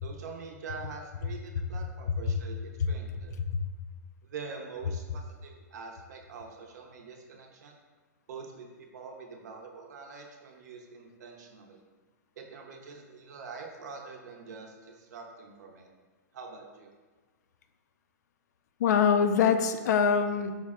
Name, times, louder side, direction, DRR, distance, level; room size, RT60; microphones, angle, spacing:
voice 1, 0.0-3.4 4.2-7.7 8.3-11.8 12.4-15.9 16.3-16.9, right 5 dB, 70° right, 1 dB, 0.7 m, -45 dB
voice 2, 18.8-20.6, left 6 dB, 70° left, 8 dB, 0.4 m, -24 dB
4.8 x 2.1 x 3.5 m, 1.4 s
hypercardioid pair, 130°, 9 cm